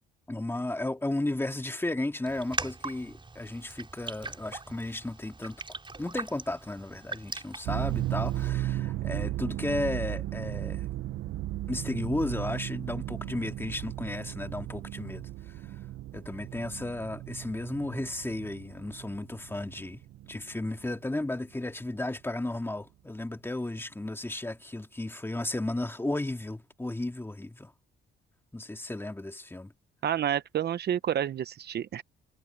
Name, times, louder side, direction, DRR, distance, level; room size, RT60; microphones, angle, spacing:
voice 1, 0.3-10.9 11.7-15.6 16.1-20.0 20.3-27.7 28.5-29.7, left 2 dB, 10° left, 2.4 m, -34 dB
Raindrop, 2.3-8.5, right 3 dB, 25° right, 5.5 m, -41 dB
sound 1, 7.7-20.9, right 15 dB, 80° right, 1.0 m, -35 dB
voice 2, 30.0-32.0, right 10 dB, 55° right, 0.8 m, -29 dB
cardioid pair, 90°, 20 cm